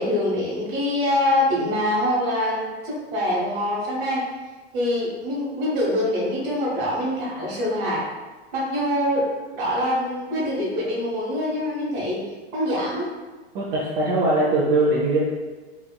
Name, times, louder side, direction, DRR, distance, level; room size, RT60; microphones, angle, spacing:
voice 1, 0.0-4.3 4.7-8.0 8.5-9.3 9.5-12.2 12.5-13.1, left 1 dB, 50° right, -5 dB, 1.2 m, -24 dB
voice 2, 13.5-15.2, right 2 dB, 30° right, -5 dB, 0.4 m, -21 dB
2.9 x 2.4 x 2.2 m, 1.3 s
figure-of-eight pair, 95°, 33 cm